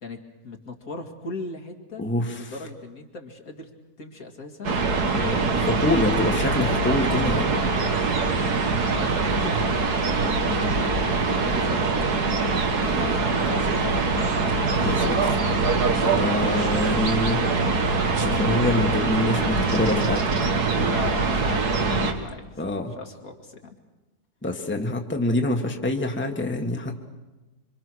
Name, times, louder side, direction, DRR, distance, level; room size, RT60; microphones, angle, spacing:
voice 1, 0.0-2.1 2.4-3.7 4.0-4.8 6.6-6.7 7.5-7.8 8.1-10.2 11.4-12.5 13.4-14.3 14.8-15.3 20.7-21.7 22.0-22.4 23.0-23.7, left 3 dB, 65° left, 3 dB, 2.6 m, -38 dB
voice 2, 2.0-2.5 5.1-7.6 12.9-13.2 14.8-15.2 15.9-17.4 18.2-20.2 20.6-20.8 22.6-22.9 24.4-27.0, left 1 dB, 5° left, 3 dB, 1.5 m, -26 dB
sound 1, 4.6-22.1, right 3 dB, 75° right, 2.2 m, -23 dB
26.0 x 25.5 x 6.3 m, 1.1 s
omnidirectional pair, 1.7 m